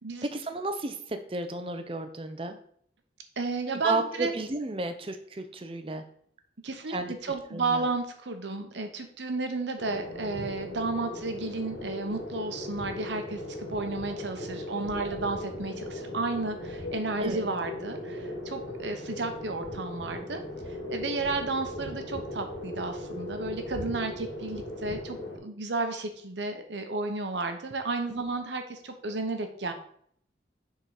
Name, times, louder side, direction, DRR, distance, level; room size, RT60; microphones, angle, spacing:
voice 1, 0.3-2.6 3.8-6.0 6.9-7.1 7.5-7.9 17.2-17.5 28.1-28.2, right 2 dB, 30° right, 8 dB, 0.6 m, -33 dB
voice 2, 3.4-4.3 6.6-20.4 20.9-29.7, right 3 dB, 80° right, 6 dB, 0.9 m, -32 dB
sound 1, 9.8-25.4, left 1 dB, 85° left, 2.2 m, -38 dB
6.7 x 3.8 x 4.8 m, 0.63 s
head